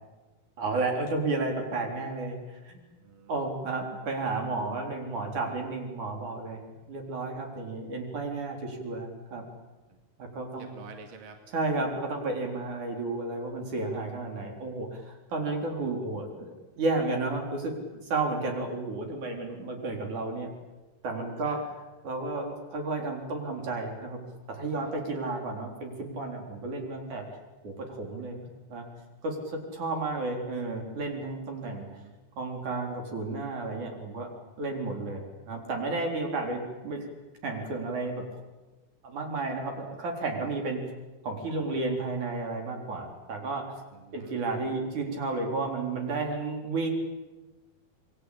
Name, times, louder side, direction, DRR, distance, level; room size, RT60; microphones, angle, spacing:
voice 1, 0.6-2.8 3.3-9.4 10.2-10.7 11.5-20.5 21.0-21.6 22.0-24.2 24.5-27.2 27.6-28.9 29.2-31.9 32.4-34.3 34.6-37.1 37.4-38.3 39.0-40.8 41.2-43.7 44.1-46.9, right 3 dB, 70° right, 2 dB, 5.4 m, -32 dB
voice 2, 3.0-3.4 9.9-10.0 10.5-11.4 15.5-15.9 21.4-21.7 24.7-25.0 31.6-32.1 40.5-40.6 43.9-44.4, right 5 dB, 45° right, 4 dB, 2.9 m, -50 dB
27.5 x 21.5 x 8.7 m, 1.2 s
omnidirectional pair, 3.6 m